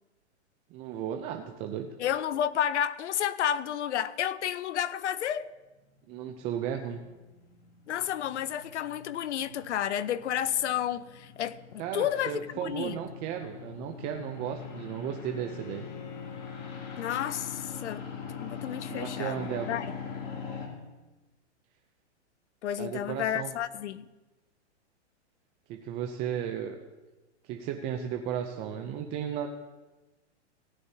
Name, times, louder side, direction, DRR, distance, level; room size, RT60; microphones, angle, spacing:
voice 1, 0.7-1.9 6.1-7.0 11.8-15.9 18.9-19.8 22.8-23.5 25.7-26.8 27.4-29.5, right 9 dB, 15° right, 0.4 m, -35 dB
voice 2, 2.0-5.5 7.9-13.0 17.0-18.0 18.4-19.9 22.6-24.1, left 10 dB, 75° left, 0.7 m, -31 dB
sound 1, 6.0-20.7, left 6 dB, 45° left, 2.7 m, -43 dB
Bowed string instrument, 15.2-20.7, left 4 dB, 25° left, 1.4 m, -51 dB
17.5 x 11.0 x 2.7 m
hypercardioid pair, 140°, 35 cm